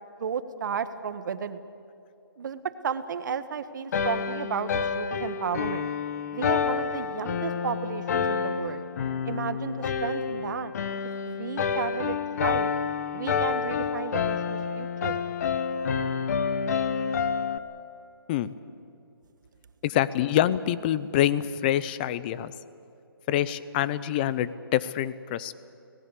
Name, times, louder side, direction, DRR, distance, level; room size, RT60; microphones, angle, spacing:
voice 1, 0.2-1.6 2.4-5.9 6.3-8.8 9.2-10.7 11.2-12.7 13.1-15.2, right 7 dB, 55° right, 11 dB, 1.4 m, -33 dB
sound 1, 3.9-17.6, left 6 dB, 45° left, 1.1 m, -29 dB
voice 2, 19.8-22.5 23.3-25.6, left 12 dB, 25° left, 16 dB, 0.7 m, -26 dB
25.5 x 19.0 x 8.4 m, 2.8 s
hypercardioid pair, 160°, 12 cm